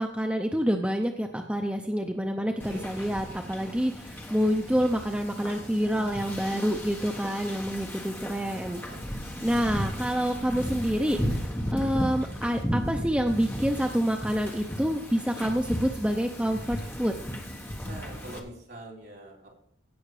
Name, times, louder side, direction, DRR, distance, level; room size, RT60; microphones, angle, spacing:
voice 1, 0.0-9.1 9.4-17.1, equal, 5° right, 3 dB, 0.6 m, -27 dB
Wind / Ocean, 2.6-18.4, equal, 10° left, 1.3 m, -35 dB
voice 2, 17.8-19.4, right 1 dB, 55° right, -4 dB, 4.2 m, -44 dB
16.5 x 6.3 x 4.9 m, 0.67 s
head